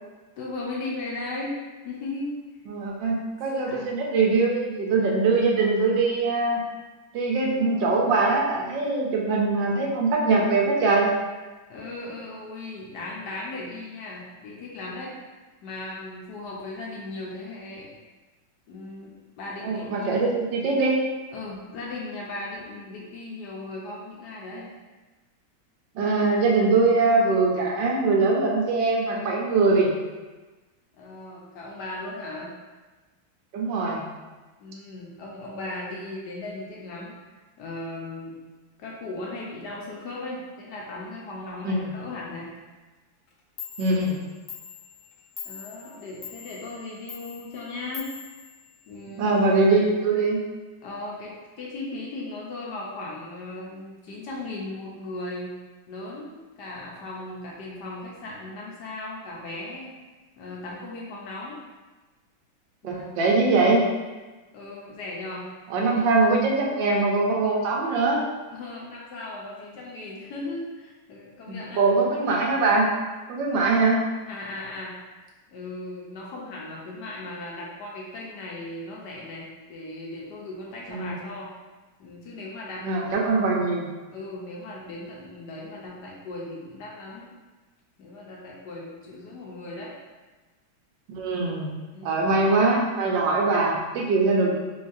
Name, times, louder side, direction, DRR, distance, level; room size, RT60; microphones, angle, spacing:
voice 1, 0.4-1.6 1.8-2.4 3.7-3.8 11.7-15.1 15.6-17.9 18.7-20.1 21.3-24.7 30.9-32.5 34.6-37.1 37.6-38.4 38.8-42.5 45.4-48.1 48.9-49.4 50.8-55.5 55.9-56.3 56.6-59.9 60.4-61.6 62.8-63.0 64.5-65.5 65.7-66.2 68.5-71.9 74.3-74.9 75.5-81.5 82.0-83.5 84.1-87.3 88.0-89.9 91.9-92.2, left 2 dB, 70° left, -3 dB, 1.1 m, -37 dB
voice 2, 2.7-6.6 7.1-11.1 19.6-21.0 25.9-29.9 33.5-34.0 41.6-41.9 43.8-44.1 49.2-50.4 62.8-63.9 65.7-68.2 71.5-72.9 73.3-74.0 80.9-81.2 82.8-83.9 91.2-91.7 92.0-94.5, right 3 dB, 70° right, -2 dB, 1.4 m, -22 dB
Clock, 43.3-43.4 43.6-49.2, left 8 dB, 90° left, 1.5 m, -43 dB
3.9 x 3.8 x 2.6 m, 1.2 s
omnidirectional pair, 2.2 m